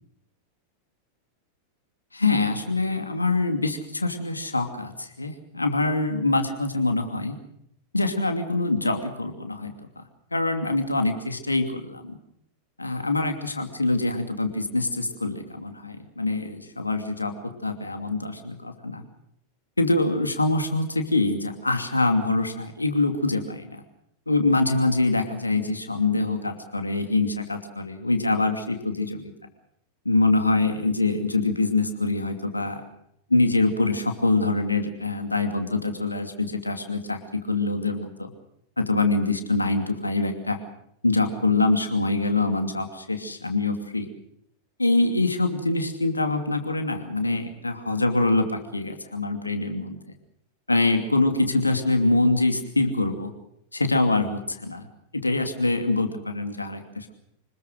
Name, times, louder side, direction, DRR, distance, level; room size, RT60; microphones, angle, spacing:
voice 1, 2.1-7.4 7.9-10.0 10.3-12.2 12.8-19.0 19.8-23.8 24.3-29.3 30.0-32.8 33.3-38.3 38.8-40.6 41.0-44.1 44.8-50.0 50.7-53.3 53.7-54.9 55.1-57.1, left 2 dB, 80° left, 6 dB, 2.6 m, -24 dB
25.0 x 21.0 x 6.5 m, 0.75 s
figure-of-eight pair, 90°, 0 cm